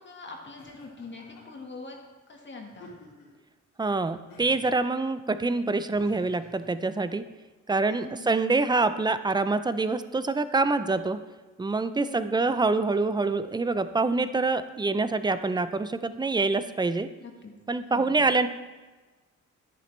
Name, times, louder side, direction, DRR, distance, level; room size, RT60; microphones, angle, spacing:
voice 1, 0.0-2.0 2.3-2.9 7.9-8.3 12.0-12.6 17.2-17.5 17.9-18.2, left 3 dB, 40° left, 1 dB, 1.7 m, -43 dB
Laughter, 0.6-1.6 2.7-3.4 4.3-4.8 5.9-6.7, left 1 dB, 85° left, 3.2 m, -51 dB
voice 2, 3.8-7.2 7.7-11.2 11.6-17.1 17.7-18.5, right 3 dB, 15° right, 12 dB, 0.5 m, -26 dB
10.0 x 9.9 x 3.3 m, 1.2 s
cardioid pair, 90°, 30 cm